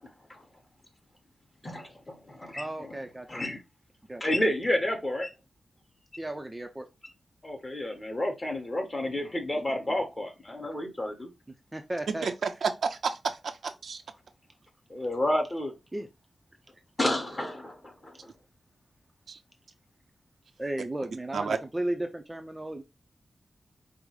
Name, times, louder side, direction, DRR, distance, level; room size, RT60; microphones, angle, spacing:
voice 1, 1.6-2.9 3.3-3.6 4.2-5.3 7.4-11.3 14.9-15.7 17.0-18.1, left 1 dB, 25° left, 1.4 m, -30 dB
voice 2, 2.5-3.4 4.1-4.2 6.2-6.9 11.7-12.3 15.0-15.1 15.9-16.1 20.6-22.8, right 1 dB, 15° right, 0.5 m, -35 dB
voice 3, 12.2-14.0 19.3-19.4 21.3-21.6, right 5 dB, 80° right, 0.6 m, -31 dB
5.2 x 2.0 x 4.7 m
wide cardioid pair, 100°, 0 cm